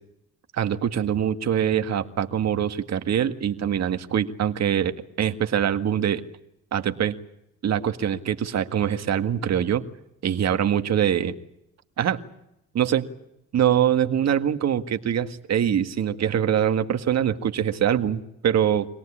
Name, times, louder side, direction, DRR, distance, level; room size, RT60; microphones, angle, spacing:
voice 1, 0.6-6.2 6.7-7.1 7.6-9.8 10.2-11.4 12.0-12.2 12.7-13.1 13.5-18.9, right 9 dB, 60° right, 8 dB, 1.9 m, -23 dB
25.0 x 18.0 x 10.0 m, 0.83 s
cardioid pair, 90°, 30 cm